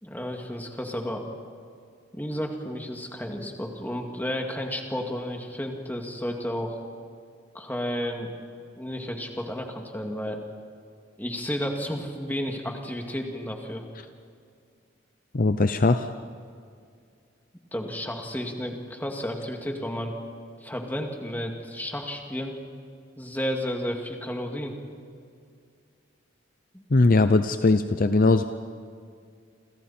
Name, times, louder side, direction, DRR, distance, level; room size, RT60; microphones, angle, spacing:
voice 1, 0.0-1.2 2.1-6.8 7.5-8.3 8.7-10.4 11.2-13.8 17.7-20.2 20.6-22.6 23.2-24.8, equal, 10° left, 2 dB, 2.4 m, -32 dB
voice 2, 15.3-16.1 26.9-28.4, left 3 dB, 45° left, 9 dB, 0.7 m, -20 dB
29.5 x 26.5 x 4.4 m, 2.3 s
head